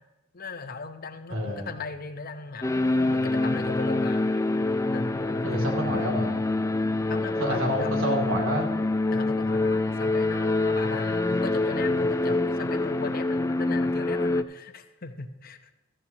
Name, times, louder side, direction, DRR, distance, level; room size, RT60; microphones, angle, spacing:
voice 1, 0.3-4.2 4.8-6.4 7.1-8.0 9.1-15.7, left 3 dB, 45° left, 8 dB, 0.8 m, -37 dB
voice 2, 1.3-1.7 5.4-6.3 7.4-8.7, equal, 85° right, 1 dB, 2.8 m, -27 dB
sound 1, 2.6-14.4, left 2 dB, 15° left, 0.4 m, -26 dB
15.5 x 13.5 x 2.9 m, 1.0 s
head